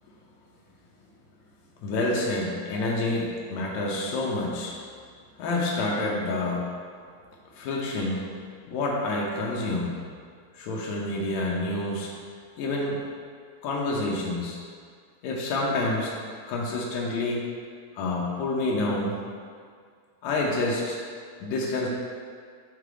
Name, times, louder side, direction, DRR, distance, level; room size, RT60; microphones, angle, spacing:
voice 1, 1.8-4.7 5.4-6.7 7.5-8.3 8.7-10.0 10.5-12.1 12.6-13.0 13.6-14.6 15.2-16.1 16.5-17.4 18.0-19.2 20.2-21.0 21.4-21.9, left 2 dB, 85° left, -3 dB, 1.6 m, -28 dB
6.5 x 3.8 x 4.9 m, 2.1 s
omnidirectional pair, 4.2 m